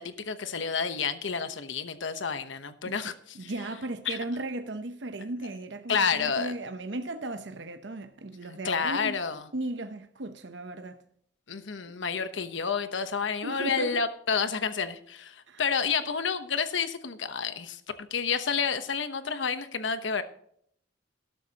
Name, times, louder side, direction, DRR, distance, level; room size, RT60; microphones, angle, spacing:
voice 1, 0.0-3.5 4.1-4.2 5.9-6.5 8.6-9.4 11.5-17.8 18.1-20.2, left 5 dB, 85° left, 1.0 m, -30 dB
voice 2, 3.3-9.2 9.5-11.0 13.4-14.0 15.5-15.6, right 2 dB, 75° right, 0.8 m, -36 dB
13.0 x 12.5 x 2.9 m
head